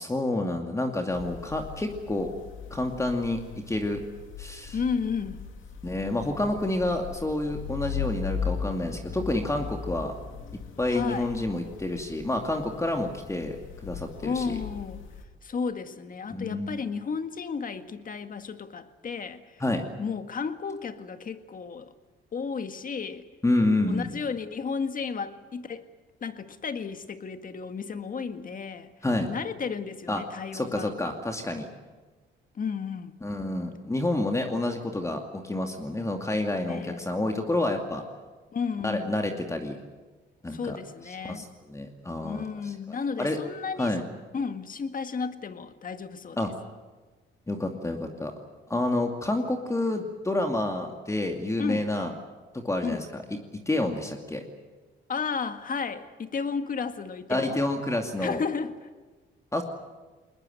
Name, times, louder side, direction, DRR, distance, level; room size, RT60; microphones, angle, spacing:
voice 1, 0.0-2.3 2.7-4.0 4.4-4.8 5.8-10.1 10.8-14.6 16.3-16.8 19.6-19.8 23.4-24.1 29.0-29.3 30.1-30.2 30.5-31.7 33.2-38.0 38.8-39.8 40.4-40.8 41.2-43.4 43.8-44.0 46.4-46.5 47.5-48.3 48.7-52.1 52.5-53.0 53.3-54.4 57.3-58.4 59.5-59.6, left 2 dB, 15° left, 2.5 m, -29 dB
sound 1, 1.1-15.2, left 6 dB, 80° left, 2.6 m, -38 dB
voice 2, 4.7-5.5 10.9-11.3 14.2-15.0 15.4-19.6 20.0-21.9 22.3-23.3 23.9-25.9 26.2-28.9 29.3-30.9 32.6-33.2 36.6-37.1 38.5-39.1 40.5-41.5 42.2-44.0 44.3-46.4 51.6-51.9 52.8-53.0 55.1-57.6 58.2-58.7, left 5 dB, 45° left, 1.8 m, -33 dB
22.0 x 20.5 x 9.2 m
cardioid pair, 90°, 20 cm